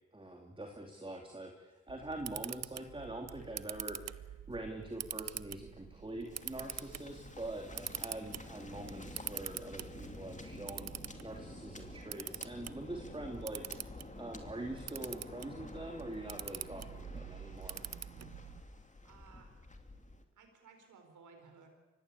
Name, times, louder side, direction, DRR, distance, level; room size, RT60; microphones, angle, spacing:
voice 1, 0.1-10.9 11.2-13.7 14.2-17.9, right 1 dB, 15° right, 2 dB, 2.9 m, -44 dB
Camera, 1.9-18.6, right 9 dB, 60° right, 0.7 m, -46 dB
Waves surf, 6.3-20.2, left 2 dB, 25° left, 2.8 m, -50 dB
voice 2, 19.0-19.6 20.4-21.7, right 5 dB, 85° right, 5 dB, 4.5 m, -58 dB
24.0 x 18.5 x 8.5 m, 1.3 s
cardioid pair, 55°, 30 cm